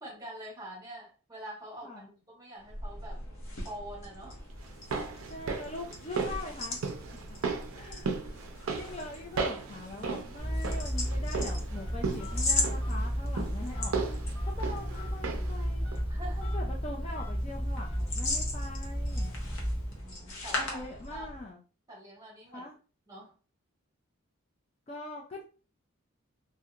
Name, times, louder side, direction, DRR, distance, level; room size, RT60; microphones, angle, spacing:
voice 1, 0.0-1.9 2.3-3.2 3.6-4.4 7.7-8.2 16.1-16.5 20.0-20.8 21.1-21.3 21.9-22.7 23.1-23.3, right 1 dB, 15° right, -4 dB, 1.0 m, -45 dB
sound 1, 2.6-21.5, left 2 dB, 70° left, 0.7 m, -39 dB
sound 2, 4.6-15.6 15.9-16.0, right 4 dB, 75° right, 0.4 m, -36 dB
voice 2, 5.3-6.8 7.5-8.2 8.7-13.9 14.5-15.9 16.5-19.3 20.6-21.6 22.5-22.8 24.9-25.4, left 2 dB, 30° left, -1 dB, 0.3 m, -42 dB
Telephone, 10.4-20.1, equal, 5° left, 1.2 m, -33 dB
2.7 x 2.1 x 2.3 m, 0.36 s
head